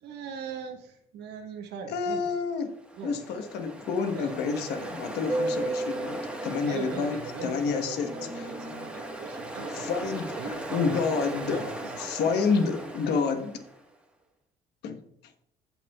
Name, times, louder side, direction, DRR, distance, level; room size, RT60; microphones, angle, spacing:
voice 1, 0.0-2.2 3.0-3.2 4.1-4.3 6.6-11.0 11.5-12.0, right 5 dB, 80° right, 4 dB, 1.3 m, -40 dB
voice 2, 1.9-2.7 3.0-8.5 9.7-13.5 14.8-15.0, left 5 dB, 80° left, 7 dB, 1.2 m, -29 dB
Ocean, 2.7-13.8, right 1 dB, 5° right, 1.4 m, -36 dB
15.5 x 5.8 x 2.4 m, 0.72 s
cardioid pair, 110°, 17 cm